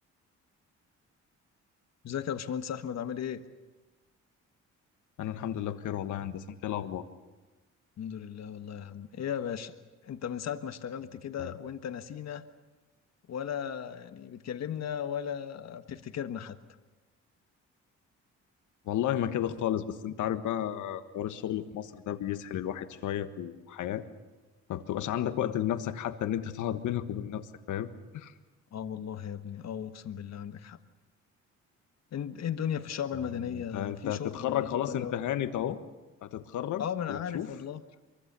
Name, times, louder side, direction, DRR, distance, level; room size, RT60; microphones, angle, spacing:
voice 1, 2.0-3.4 8.0-9.7 10.0-12.4 13.3-16.6 25.4-25.5 28.7-30.8 32.1-35.1 36.8-37.8, left 8 dB, 60° left, 9 dB, 1.5 m, -36 dB
voice 2, 5.2-7.0 11.4-11.5 18.9-24.0 24.7-27.9 28.1-28.3 33.5-35.8 36.2-37.5, left 11 dB, 80° left, 10 dB, 1.5 m, -33 dB
23.5 x 23.5 x 6.9 m, 1.2 s
cardioid pair, 90°, 30 cm